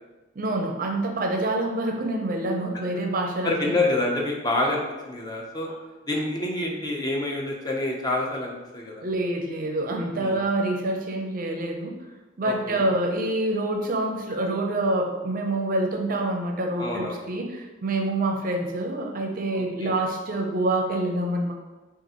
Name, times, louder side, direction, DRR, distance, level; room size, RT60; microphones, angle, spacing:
voice 1, 0.4-3.7 5.7-5.8 9.0-12.0 12.4-21.5, right 2 dB, 45° right, 2 dB, 0.5 m, -26 dB
voice 2, 3.4-5.7 6.1-9.0 10.2-10.4 12.4-12.8 16.8-17.2 19.5-19.9, left 2 dB, 20° left, 0 dB, 0.6 m, -27 dB
5.7 x 2.4 x 2.9 m, 1.2 s
head